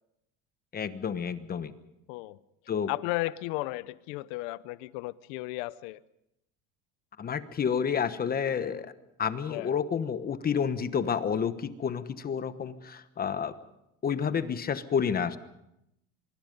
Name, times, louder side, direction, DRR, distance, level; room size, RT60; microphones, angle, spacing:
voice 1, 0.7-1.7 2.7-2.9 7.2-8.9 9.2-13.6 14.0-15.4, left 7 dB, 25° left, 12 dB, 1.1 m, -30 dB
voice 2, 2.9-6.0 9.5-9.7, left 20 dB, 80° left, 17 dB, 0.8 m, -34 dB
24.5 x 23.5 x 5.3 m, 0.84 s
cardioid pair, 140°, 36 cm